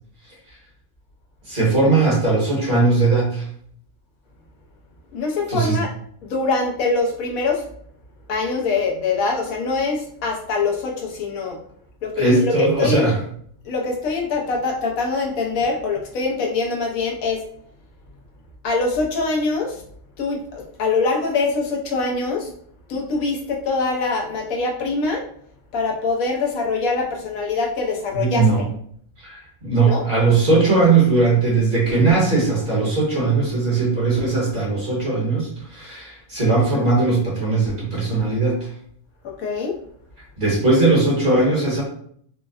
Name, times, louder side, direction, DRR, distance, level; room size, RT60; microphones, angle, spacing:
voice 1, 1.5-3.4 5.5-5.8 12.2-13.2 28.1-28.6 29.2-38.7 40.4-41.8, right 3 dB, 40° right, -4 dB, 1.2 m, -19 dB
voice 2, 5.1-5.9 6.2-7.6 8.3-11.6 12.0-13.0 13.6-17.4 18.6-19.8 20.2-22.5 22.9-25.2 25.7-28.5 29.8-30.0 39.2-39.8, left 3 dB, 85° left, 0 dB, 1.1 m, -23 dB
4.4 x 2.1 x 2.3 m, 0.62 s
omnidirectional pair, 1.4 m